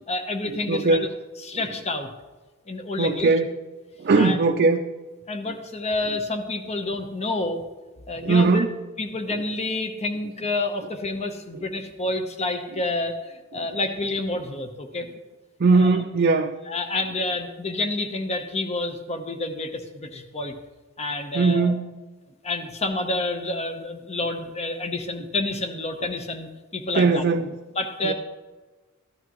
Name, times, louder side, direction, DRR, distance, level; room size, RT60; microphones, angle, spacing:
voice 1, 0.1-1.1 1.4-2.1 2.7-3.3 4.1-4.4 5.3-7.6 8.1-8.6 9.0-15.1 15.8-15.9 16.7-20.5 21.0-21.7 22.4-27.2 27.8-28.1, left 2 dB, 30° left, 6 dB, 0.9 m, -29 dB
voice 2, 0.7-1.1 3.0-3.5 4.0-4.8 8.2-8.7 11.5-11.6 13.6-13.7 15.6-16.6 21.3-21.9 26.9-27.5 28.0-28.1, right 3 dB, 45° right, 3 dB, 0.5 m, -20 dB
14.5 x 11.5 x 3.1 m, 1.3 s
head